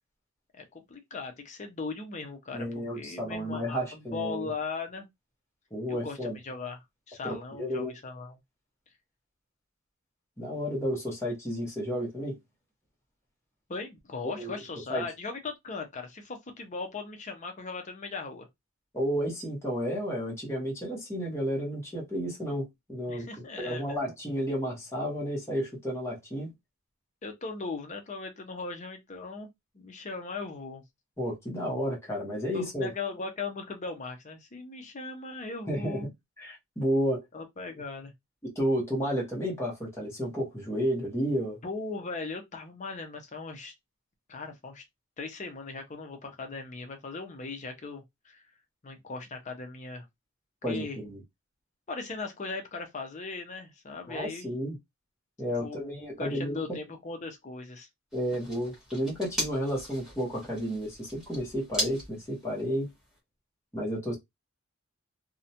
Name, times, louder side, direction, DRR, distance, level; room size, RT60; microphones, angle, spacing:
voice 1, 0.6-5.1 5.9-8.4 13.7-18.5 23.1-24.1 27.2-29.5 29.7-30.8 32.5-36.1 37.3-38.1 41.6-43.7 44.3-44.8 45.2-48.4 48.8-50.0 50.7-51.0 51.9-54.6 55.6-55.9 56.2-57.9, left 4 dB, 35° left, 0.5 m, -38 dB
voice 2, 2.5-4.5 5.7-6.3 7.2-7.9 10.4-12.4 14.4-14.6 14.9-15.0 18.9-26.5 31.2-32.9 35.7-36.1 36.4-37.2 38.4-41.6 50.6-51.2 54.1-54.8 55.4-56.8 58.1-62.9 63.7-64.1, equal, 15° left, 0.9 m, -32 dB
sound 1, 58.1-63.2, equal, 5° right, 1.3 m, -38 dB
2.4 x 2.1 x 2.7 m
head